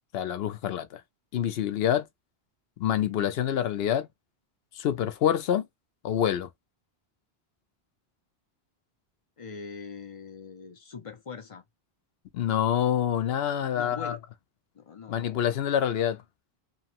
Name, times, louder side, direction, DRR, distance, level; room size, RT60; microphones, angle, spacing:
voice 1, 0.1-1.0 1.3-2.1 2.8-4.1 4.7-5.7 6.0-6.5 12.3-14.2 15.1-16.2, left 10 dB, 70° left, 0.8 m, -26 dB
voice 2, 9.4-11.6 13.8-14.2 14.7-15.5, left 6 dB, 45° left, 0.4 m, -42 dB
2.9 x 2.1 x 2.8 m
omnidirectional pair, 1.1 m